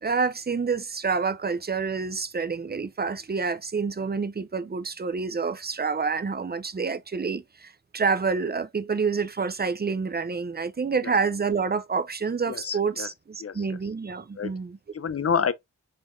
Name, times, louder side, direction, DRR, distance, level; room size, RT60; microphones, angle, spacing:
voice 1, 0.0-14.8, right 5 dB, 30° right, 0.5 m, -28 dB
voice 2, 12.5-13.1 13.4-13.5 14.4-14.5 14.9-15.5, left 6 dB, 50° left, 0.5 m, -27 dB
4.9 x 3.8 x 2.6 m
wide cardioid pair, 60°, 30 cm